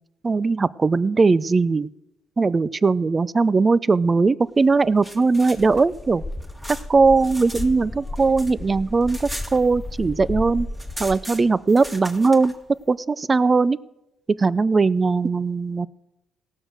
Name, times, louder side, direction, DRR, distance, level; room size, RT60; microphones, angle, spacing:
voice 1, 0.2-1.9 2.4-6.2 6.9-10.7 11.0-12.5 12.9-13.8 14.3-15.9, right 4 dB, 30° right, 19 dB, 0.4 m, -19 dB
sound 1, 4.8-7.7 8.0-10.1 10.4-10.5 10.7-12.5, equal, 10° right, 1.7 m, -38 dB
sound 2, 5.6-11.2, left 2 dB, 20° left, 0.6 m, -34 dB
17.5 x 6.4 x 6.2 m, 0.93 s
cardioid pair, 90°, 0 cm